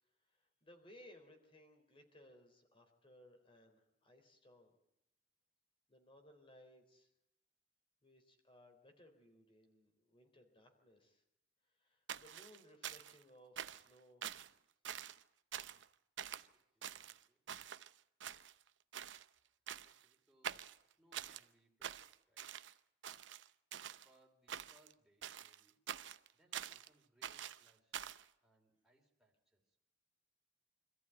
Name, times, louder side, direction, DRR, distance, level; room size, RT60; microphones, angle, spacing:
voice 1, 0.3-4.8 5.9-7.1 8.0-11.2 11.8-14.3, left 1 dB, 30° left, 5 dB, 3.8 m, -63 dB
sound 1, 12.1-13.2 13.6-13.9 14.2-14.5 14.8-15.2 15.5-15.9 16.2-16.5 16.8-17.9 18.2-18.7 18.9-19.2 19.7-20.0 20.4-21.4 21.8-22.7 23.0-24.1 24.5-24.9 25.2-26.9 27.2-28.2, right 9 dB, 85° right, 0.7 m, -46 dB
voice 2, 16.4-17.4 19.4-22.5 24.0-25.8 26.0-28.0 28.4-29.8, right 1 dB, ahead, -1 dB, 3.6 m, -74 dB
25.5 x 14.5 x 9.2 m, 0.86 s
head